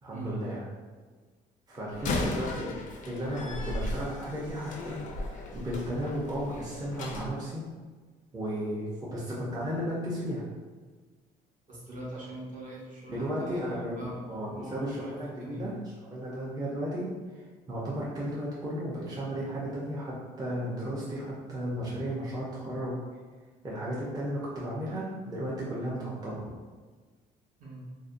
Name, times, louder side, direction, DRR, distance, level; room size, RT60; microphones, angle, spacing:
voice 1, 0.0-0.6 1.7-2.8 3.1-7.6 8.3-10.5 13.1-14.0 14.3-15.7 16.0-23.0 23.6-26.4, equal, 20° right, -7 dB, 0.5 m, -34 dB
Slam, 1.9-7.3, left 2 dB, 50° left, 0.4 m, -36 dB
voice 2, 11.7-15.8 27.6-27.9, equal, 50° right, -5 dB, 0.9 m, -42 dB
2.5 x 2.1 x 2.5 m, 1.4 s
cardioid pair, 110°, 17 cm